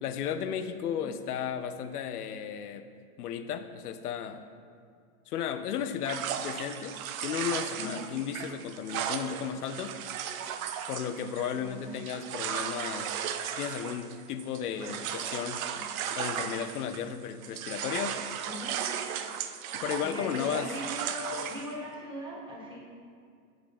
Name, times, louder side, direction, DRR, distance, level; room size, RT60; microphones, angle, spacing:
voice 1, 0.0-2.9 3.2-4.4 5.3-10.0 10.9-13.1 13.5-15.6 16.2-18.2 19.7-20.7, left 8 dB, 75° left, 10 dB, 0.8 m, -34 dB
voice 2, 0.8-1.1 7.8-8.1 11.5-11.9 15.7-15.8 18.5-18.8 20.0-22.8, left 1 dB, 10° right, -4 dB, 1.7 m, -40 dB
sound 1, 6.1-17.2 17.4-21.7, right 8 dB, 65° right, 0.7 m, -36 dB
9.7 x 4.0 x 5.9 m, 2.2 s
hypercardioid pair, 130°, 46 cm